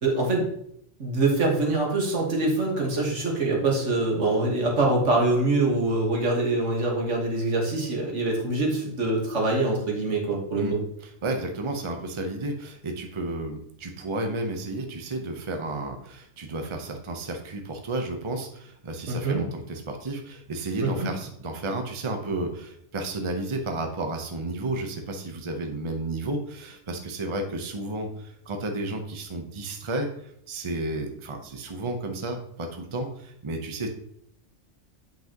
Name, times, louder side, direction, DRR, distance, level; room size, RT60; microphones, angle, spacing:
voice 1, 0.0-0.5 1.0-10.8 19.1-19.4 20.8-21.1, right 2 dB, 75° right, -1 dB, 1.9 m, -24 dB
voice 2, 11.0-33.9, right 2 dB, 30° right, 4 dB, 0.8 m, -32 dB
8.1 x 5.8 x 3.0 m, 0.71 s
omnidirectional pair, 1.3 m